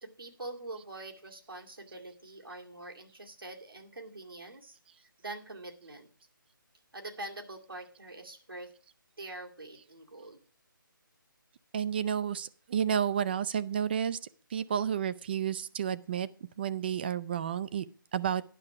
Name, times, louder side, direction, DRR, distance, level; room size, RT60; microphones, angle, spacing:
voice 1, 0.0-6.1 6.9-8.7 9.2-10.4, right 2 dB, 90° right, 1 dB, 2.3 m, -44 dB
voice 2, 11.7-14.2 14.5-16.3 16.6-17.8 18.1-18.4, right 8 dB, 30° right, 15 dB, 0.4 m, -31 dB
9.9 x 6.3 x 5.8 m, 0.43 s
figure-of-eight pair, 155°, 11 cm